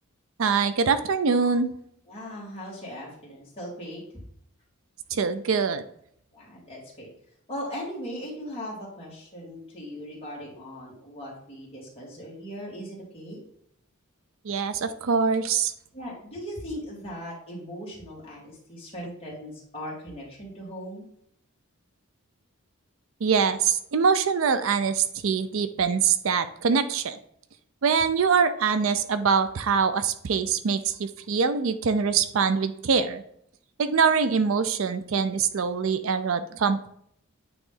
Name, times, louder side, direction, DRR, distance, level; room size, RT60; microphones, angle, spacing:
voice 1, 0.4-1.7 5.1-5.8 14.5-15.7 23.2-27.2 27.8-33.2 33.8-36.9, right 5 dB, 65° right, 11 dB, 0.5 m, -24 dB
voice 2, 2.1-4.0 6.3-7.1 7.5-13.4 15.9-21.1, equal, 25° left, -4 dB, 2.2 m, -38 dB
8.9 x 3.1 x 3.7 m, 0.69 s
head